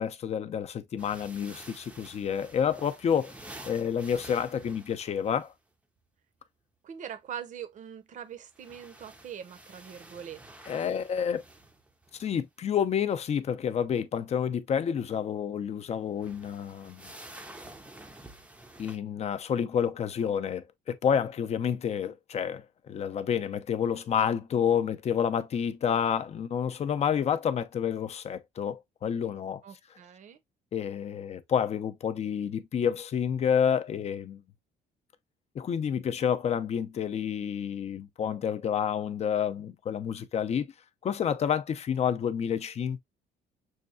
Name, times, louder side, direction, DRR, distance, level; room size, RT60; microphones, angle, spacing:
voice 1, 0.0-3.3 3.6-5.5 10.7-11.4 12.2-17.1 18.8-29.6 30.7-34.4 35.5-40.7 41.0-43.0, left 8 dB, 40° left, 0.5 m, -29 dB
sound 1, 1.0-5.5 8.3-12.4 16.1-19.0, right 1 dB, 5° right, 0.5 m, -49 dB
voice 2, 6.8-10.4 10.7-10.9 29.6-30.4, right 8 dB, 50° right, 0.7 m, -42 dB
6.3 x 2.3 x 2.4 m
cardioid pair, 110°, 17 cm